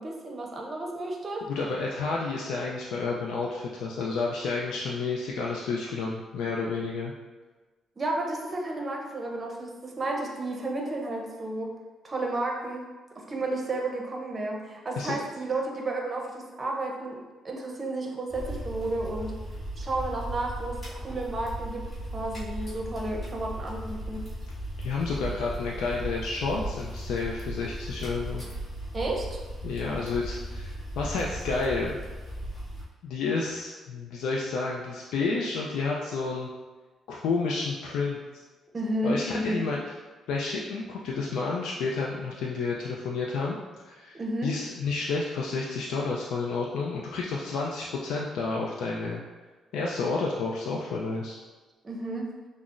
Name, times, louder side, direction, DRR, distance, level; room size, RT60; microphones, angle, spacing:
voice 1, 0.0-1.5 8.0-11.7 12.0-12.8 13.1-19.3 19.8-21.9 22.1-24.2 28.9-29.4 38.7-39.7 44.1-44.5 51.8-52.3, right 2 dB, 35° right, 0 dB, 0.6 m, -32 dB
voice 2, 1.5-7.1 15.0-15.2 24.8-28.4 29.6-32.0 33.0-36.5 37.1-38.2 39.0-39.8 40.3-43.6 43.9-49.2 49.7-51.4, left 4 dB, 85° left, -2 dB, 0.3 m, -30 dB
sound 1, 18.3-32.8, right 1 dB, 30° left, 1.5 m, -37 dB
5.7 x 2.0 x 2.5 m, 1.3 s
cardioid pair, 90°, 0 cm